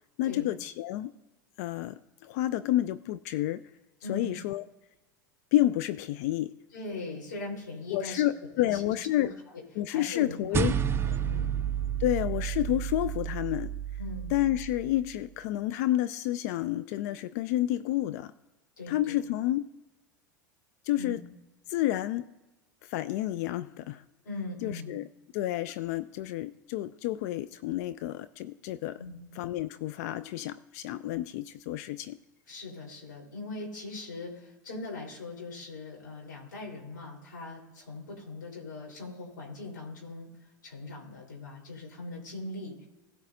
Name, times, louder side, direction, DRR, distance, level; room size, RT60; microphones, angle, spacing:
voice 1, 0.2-1.1 1.6-3.6 4.1-4.6 5.5-6.5 7.9-9.3 9.8-10.7 12.0-13.7 14.3-18.3 18.9-19.6 20.8-21.2 21.7-22.2 22.8-24.0 24.6-25.1 25.3-29.0 29.4-32.2, left 14 dB, 55° left, 14 dB, 0.3 m, -30 dB
voice 2, 4.0-4.3 6.7-8.2 8.5-9.6 9.9-10.7 11.2-11.6 14.0-14.3 18.8-19.2 20.9-21.2 24.2-24.9 29.0-29.3 32.5-42.9, left 2 dB, 75° left, -2 dB, 4.1 m, -40 dB
sound 1, 10.5-15.2, right 8 dB, 25° right, 0.5 m, -31 dB
17.0 x 8.0 x 2.7 m, 1.1 s
figure-of-eight pair, 80°, 10 cm